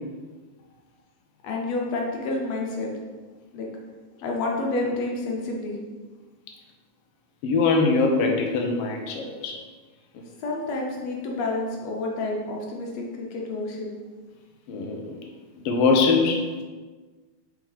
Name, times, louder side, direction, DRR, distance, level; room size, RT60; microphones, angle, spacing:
voice 1, 1.4-2.9 3.5-3.7 4.2-5.8 10.4-13.9, left 2 dB, 65° left, -1 dB, 2.0 m, -29 dB
voice 2, 7.4-9.5 14.7-15.0 15.6-16.4, left 4 dB, 85° left, 2 dB, 1.3 m, -22 dB
6.1 x 4.9 x 3.4 m, 1.4 s
omnidirectional pair, 3.6 m